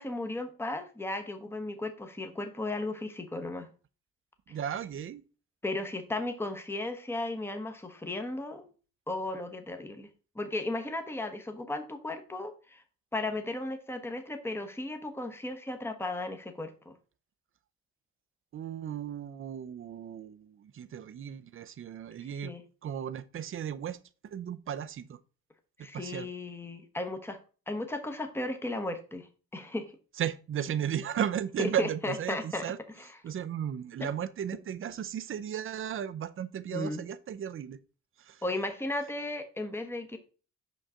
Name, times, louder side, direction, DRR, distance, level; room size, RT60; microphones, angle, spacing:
voice 1, 0.0-3.7 5.6-8.6 9.1-10.1 10.3-12.8 13.1-16.9 22.4-22.6 25.8-27.4 27.7-29.9 31.6-32.6 33.0-33.1 36.7-37.0 38.4-40.2, left 2 dB, 10° left, 1.0 m, -35 dB
voice 2, 4.5-5.2 18.5-22.5 22.8-24.0 24.2-25.2 25.8-26.3 30.2-32.8 33.2-37.8 38.2-38.4, right 9 dB, 45° right, 0.6 m, -35 dB
5.6 x 5.3 x 3.7 m
cardioid pair, 90°, 30 cm